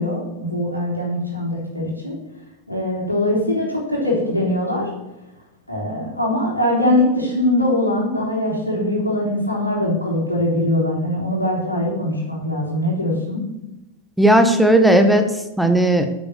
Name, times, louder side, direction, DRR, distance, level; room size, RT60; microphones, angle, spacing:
voice 1, 0.0-2.1 2.7-4.9 5.7-13.4, left 1 dB, 90° left, -3 dB, 3.7 m, -22 dB
voice 2, 14.2-16.1, right 1 dB, ahead, 7 dB, 1.3 m, -15 dB
8.7 x 8.3 x 6.5 m, 0.99 s
figure-of-eight pair, 90°, 0 cm